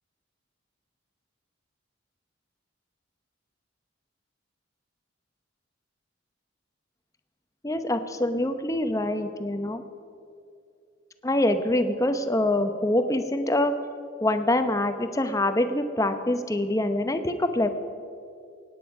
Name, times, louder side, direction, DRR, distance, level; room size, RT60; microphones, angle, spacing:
voice 1, 7.6-9.8 11.2-13.7 14.2-17.7, left 1 dB, 15° left, 8 dB, 0.8 m, -25 dB
24.0 x 9.8 x 5.3 m, 2.4 s
head